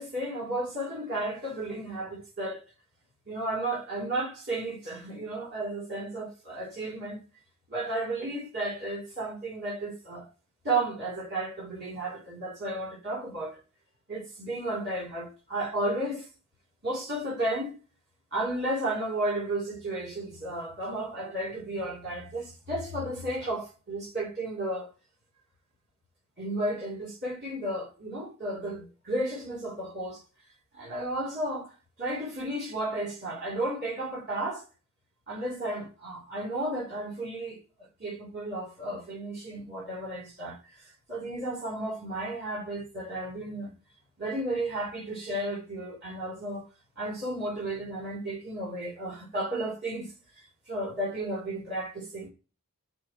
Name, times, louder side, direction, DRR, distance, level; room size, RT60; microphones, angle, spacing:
voice 1, 0.0-2.6 3.3-7.2 7.7-10.3 10.6-13.6 14.1-16.3 16.8-17.8 18.3-24.9 26.4-30.2 30.7-31.7 32.0-34.6 35.3-37.6 38.0-40.8 41.1-43.7 44.2-46.7 47.0-52.3, right 1 dB, 50° right, 4.3 m, -33 dB
12.5 x 4.7 x 3.3 m
head